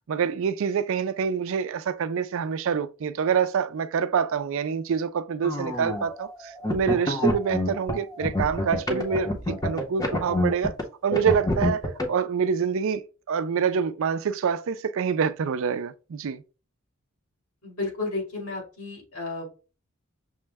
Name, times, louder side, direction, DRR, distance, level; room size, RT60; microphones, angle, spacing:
voice 1, 0.1-10.7 11.0-11.8 12.1-13.0 13.3-16.4, right 6 dB, 65° right, 0.4 m, -26 dB
sound 1, 5.4-6.1 6.6-10.8 11.1-12.1, left 1 dB, 20° left, 0.7 m, -27 dB
voice 2, 17.6-19.5, left 3 dB, 85° left, 2.4 m, -32 dB
6.1 x 2.1 x 3.4 m
head